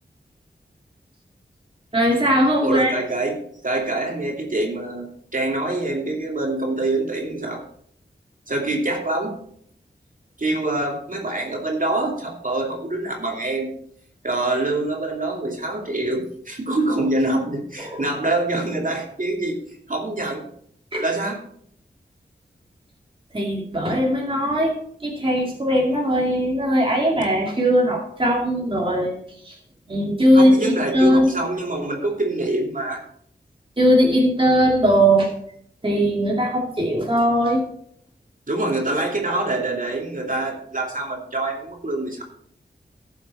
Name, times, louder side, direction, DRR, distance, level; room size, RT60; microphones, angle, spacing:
voice 1, 1.9-2.9 17.8-18.1 20.9-21.0 23.3-24.7 25.0-29.2 29.5-29.6 29.9-31.3 33.8-35.3 35.8-37.6, equal, 30° right, -2 dB, 2.4 m, -19 dB
voice 2, 2.6-3.4 3.6-5.1 5.3-7.6 8.5-9.3 10.4-13.7 14.2-19.6 19.9-20.4 21.0-21.4 30.3-33.0 38.5-42.2, right 2 dB, 45° right, 0 dB, 2.8 m, -25 dB
13.5 x 7.3 x 4.3 m, 0.66 s
cardioid pair, 50°, 19 cm